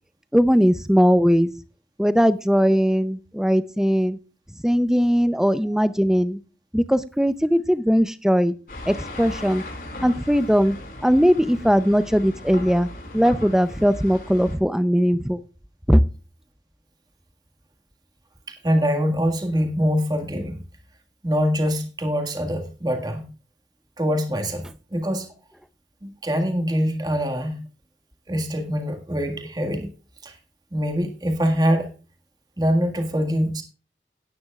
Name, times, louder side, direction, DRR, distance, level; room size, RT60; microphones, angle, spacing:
voice 1, 0.3-1.5 2.0-4.2 4.6-6.4 6.7-8.5 8.9-9.6 10.0-10.8 11.0-12.9 13.1-15.4 15.9-16.0, equal, 5° right, 13 dB, 0.5 m, -19 dB
sound 1, 8.7-14.6, left 1 dB, 55° left, 5.2 m, -37 dB
voice 2, 18.5-20.6 21.2-23.2 24.0-25.3 26.0-27.7 28.3-29.9 30.2-30.4 30.7-31.9 32.6-33.6, equal, 25° right, 4 dB, 1.7 m, -24 dB
17.5 x 9.5 x 2.4 m, 0.34 s
head